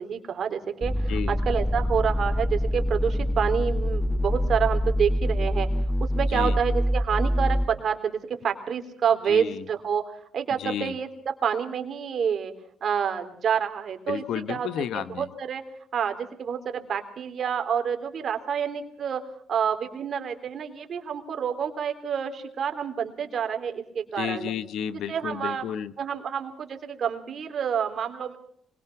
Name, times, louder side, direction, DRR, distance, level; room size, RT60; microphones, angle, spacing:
voice 1, 0.0-5.7 6.1-10.0 10.3-11.1 11.4-12.5 12.8-14.7 15.2-15.6 15.9-19.2 19.5-24.5 25.1-25.6 26.0-28.4, right 7 dB, 55° right, 6 dB, 3.4 m, -28 dB
sound 1, 0.8-7.7, equal, 10° left, 1.5 m, -25 dB
voice 2, 9.3-9.6 10.6-10.9 14.1-15.3 24.2-25.9, left 9 dB, 75° left, 14 dB, 1.1 m, -32 dB
25.0 x 22.0 x 5.9 m, 0.64 s
cardioid pair, 90°, 0 cm